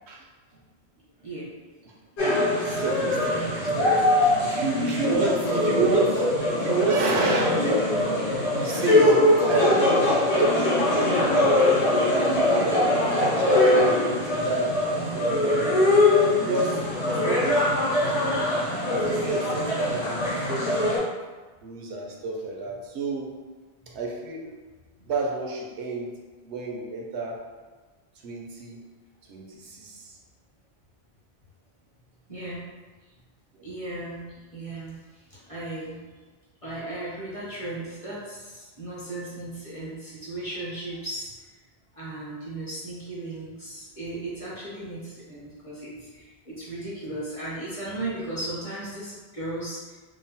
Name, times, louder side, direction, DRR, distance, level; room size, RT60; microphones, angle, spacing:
voice 1, 1.2-1.6 3.5-4.0 25.0-25.1 32.3-32.7 33.6-36.1 36.6-41.3 41.9-50.0, right 2 dB, 35° left, -8 dB, 0.7 m, -36 dB
sound 1, 2.2-21.0, left 2 dB, 85° left, 1.2 m, -22 dB
voice 2, 2.6-6.3 6.6-15.7 16.4-16.8 17.2-18.5 18.9-20.8 21.6-23.3 23.9-24.5 25.0-26.1 26.4-27.4 28.2-28.8 29.3-30.2 33.5-33.7, right 3 dB, 85° right, -1 dB, 0.9 m, -29 dB
2.9 x 2.1 x 2.7 m, 1.3 s
omnidirectional pair, 1.1 m